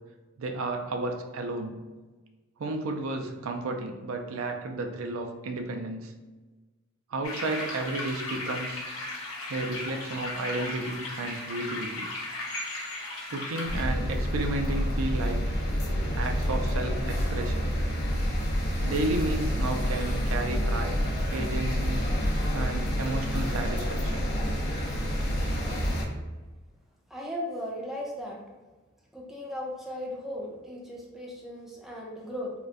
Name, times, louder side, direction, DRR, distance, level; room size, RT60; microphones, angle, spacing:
voice 1, 0.4-1.8 2.6-6.1 7.1-8.8 9.5-12.1 13.3-15.4 16.1-17.8 18.8-21.0 21.3-22.0 22.5-24.3, right 2 dB, 75° right, 4 dB, 0.4 m, -32 dB
sound 1, 7.2-13.8, left 2 dB, 90° left, 0.8 m, -36 dB
sound 2, 13.7-26.1, equal, 50° left, 0.6 m, -28 dB
voice 2, 27.1-28.4 29.1-32.5, left 1 dB, ahead, -3 dB, 0.5 m, -37 dB
3.7 x 2.1 x 2.5 m, 1.2 s
head